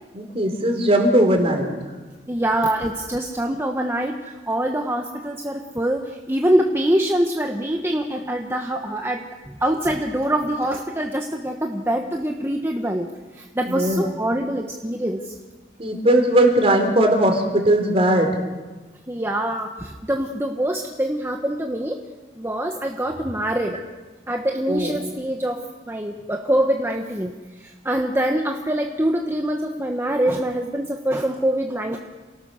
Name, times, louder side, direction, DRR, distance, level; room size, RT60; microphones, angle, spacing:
voice 1, 0.1-1.7 13.7-14.0 15.8-18.3 24.7-24.9, right 1 dB, 35° right, 4 dB, 3.6 m, -18 dB
voice 2, 2.3-4.2 4.5-9.2 9.5-13.1 13.3-15.3 19.1-22.0 22.4-23.8 24.3-32.0, right 1 dB, 15° right, 2 dB, 1.2 m, -24 dB
28.5 x 18.0 x 6.5 m, 1.3 s
head